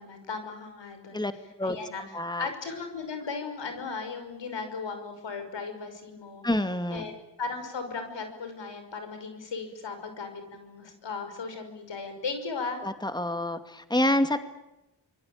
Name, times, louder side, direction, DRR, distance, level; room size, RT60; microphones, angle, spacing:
voice 1, 0.0-1.3 1.6-2.0 2.4-6.4 6.9-7.1 7.4-12.8, left 4 dB, 80° left, 7 dB, 5.9 m, -36 dB
voice 2, 2.1-2.5 6.4-7.1 12.8-14.4, left 1 dB, 10° left, 9 dB, 2.4 m, -27 dB
26.5 x 22.5 x 8.9 m, 0.92 s
cardioid pair, 40°, 43 cm